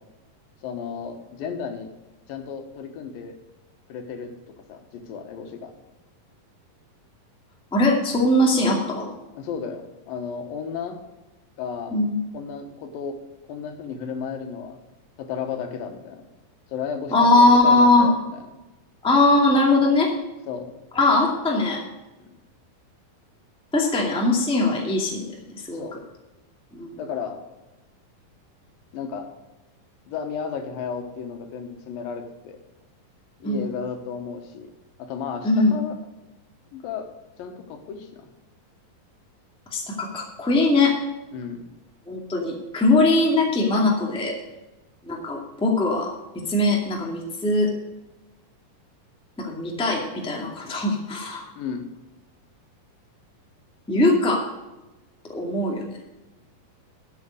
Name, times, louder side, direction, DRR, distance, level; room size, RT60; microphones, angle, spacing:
voice 1, 0.6-1.9 2.3-3.4 3.9-4.3 4.7-5.7 9.3-11.0 11.6-12.0 12.3-13.2 13.5-14.8 15.2-16.2 16.7-18.4 20.5-20.7 22.2-22.3 25.7-26.1 27.0-27.4 28.9-29.3 30.1-32.6 33.4-34.7 35.0-36.0 36.7-37.1 37.4-38.3 41.3-41.7 51.6-51.8, left 6 dB, 85° left, 5 dB, 3.0 m, -33 dB
voice 2, 7.7-9.1 11.9-12.2 17.1-18.1 19.0-20.1 20.9-21.8 23.7-25.8 26.7-27.0 33.4-33.6 35.4-35.7 39.7-41.0 42.1-44.3 45.0-46.1 46.5-47.7 49.4-51.5 53.9-54.5 55.3-55.8, left 2 dB, ahead, -1 dB, 1.4 m, -20 dB
13.0 x 7.3 x 6.5 m, 1.0 s
omnidirectional pair, 4.0 m